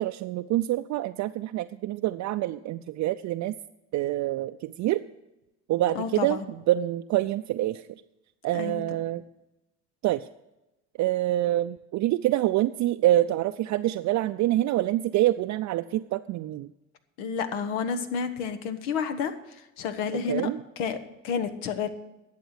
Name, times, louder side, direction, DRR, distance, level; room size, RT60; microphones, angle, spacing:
voice 1, 0.0-3.5 3.9-5.0 5.7-7.9 8.4-9.2 10.0-10.3 11.0-16.7 20.3-20.6, right 14 dB, 50° right, 8 dB, 0.5 m, -26 dB
voice 2, 5.9-6.4 8.5-8.8 17.2-20.5 20.8-21.0 21.2-21.9, left 6 dB, 80° left, 9 dB, 1.3 m, -30 dB
11.5 x 7.7 x 6.5 m, 0.96 s
hypercardioid pair, 75°, 37 cm